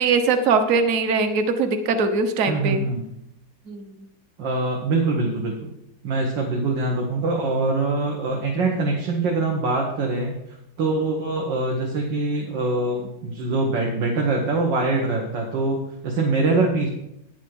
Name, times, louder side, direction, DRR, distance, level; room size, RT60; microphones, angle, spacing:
voice 1, 0.0-2.8 3.7-3.8, right 4 dB, 50° right, 7 dB, 1.3 m, -21 dB
voice 2, 2.5-3.0 4.4-5.7 6.0-10.4 10.8-16.9, right 3 dB, 85° right, 0 dB, 2.1 m, -23 dB
10.0 x 7.2 x 6.2 m, 0.80 s
omnidirectional pair, 1.9 m